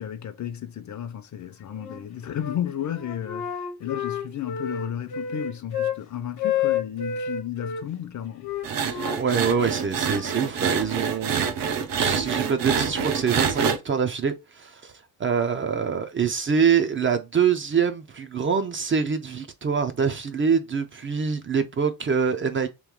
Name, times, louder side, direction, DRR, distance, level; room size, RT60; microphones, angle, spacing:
voice 1, 0.0-8.5, left 10 dB, 50° left, 0.6 m, -33 dB
Wind instrument woodwind instrument, 1.8-2.6 2.9-6.0 6.4-7.8 8.4-10.9, left 8 dB, 75° left, 1.0 m, -30 dB
sound 1, 8.6-13.8, right 6 dB, 65° right, 0.7 m, -26 dB
voice 2, 8.8-11.5 11.9-14.9 15.2-22.7, right 6 dB, 35° right, 0.4 m, -25 dB
3.1 x 3.0 x 3.6 m
wide cardioid pair, 160°, 37 cm